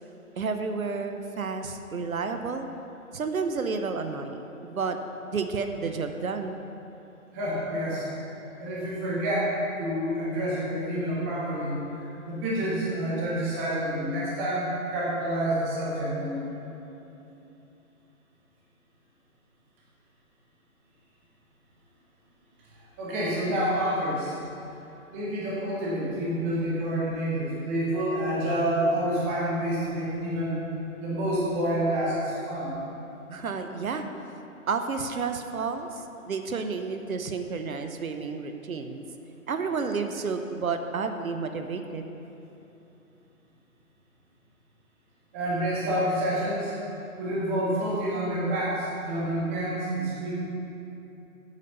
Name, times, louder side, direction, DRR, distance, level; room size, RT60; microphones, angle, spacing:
voice 1, 0.4-2.7 3.1-5.0 5.3-6.6 33.3-34.1 34.7-39.0 39.5-42.0, right 4 dB, 70° right, 7 dB, 0.9 m, -31 dB
voice 2, 7.3-8.1 8.6-11.8 12.2-16.4 23.0-24.3 25.1-30.6 31.0-32.7 45.3-46.7 47.2-50.3, right 1 dB, 10° right, -6 dB, 0.8 m, -28 dB
8.4 x 8.3 x 5.5 m, 3.0 s
figure-of-eight pair, 155°, 43 cm